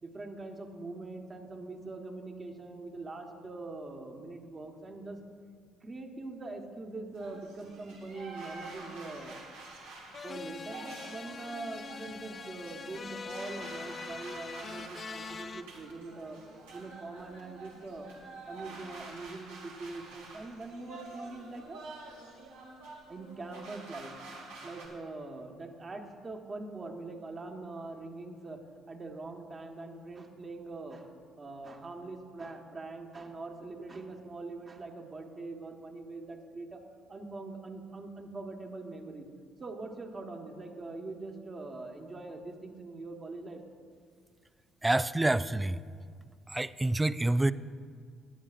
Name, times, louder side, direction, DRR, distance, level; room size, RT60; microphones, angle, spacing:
voice 1, 0.0-5.2 5.8-9.4 10.2-16.4 16.7-18.1 18.5-21.8 23.1-24.1 24.6-31.1 31.4-36.8 37.1-39.3 39.6-43.6, right 3 dB, 35° right, 3 dB, 1.4 m, -43 dB
sound 1, 7.1-24.9, right 3 dB, 85° right, 2.3 m, -48 dB
sound 2, 10.1-15.6, left 4 dB, 40° left, 0.5 m, -43 dB
voice 2, 44.8-45.8 46.5-47.5, right 2 dB, 15° right, 16 dB, 0.4 m, -27 dB
17.0 x 9.7 x 2.5 m, 2.1 s
hypercardioid pair, 55°, 0 cm